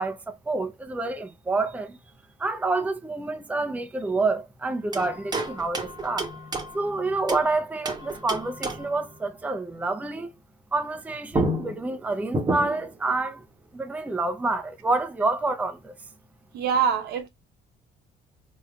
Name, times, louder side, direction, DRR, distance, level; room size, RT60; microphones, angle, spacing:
voice 1, 0.0-2.0 2.4-6.3 6.7-10.3 10.7-13.4 13.7-15.9, right 3 dB, 10° right, 0.6 m, -28 dB
sound 1, 4.9-7.5 7.8-9.0 10.9-11.0 11.3-13.0, right 2 dB, 25° right, 1.0 m, -30 dB
voice 2, 16.5-17.3, right 7 dB, 75° right, 1.0 m, -24 dB
4.2 x 3.5 x 2.3 m
cardioid pair, 110°, 17 cm